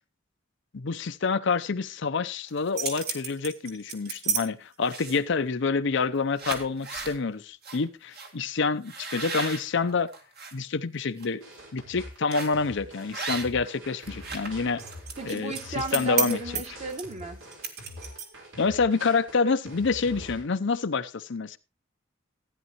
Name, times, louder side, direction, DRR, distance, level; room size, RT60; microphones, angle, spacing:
voice 1, 0.7-10.1 10.5-11.4 11.7-14.8 15.3-16.4 18.6-21.6, left 4 dB, 65° left, 0.7 m, -27 dB
sound 1, 2.5-4.4 4.9-5.3 5.9-6.1 6.4-7.2 7.6-7.8 8.1-8.3 8.9-10.5 11.0-11.3 12.3-12.6 13.1-13.7 14.0-18.5, right 5 dB, 55° right, 2.1 m, -33 dB
sound 2, 11.4-20.4, equal, 80° right, 4.5 m, -45 dB
voice 2, 15.2-17.4, right 2 dB, 35° right, 1.6 m, -35 dB
15.0 x 9.9 x 3.0 m
head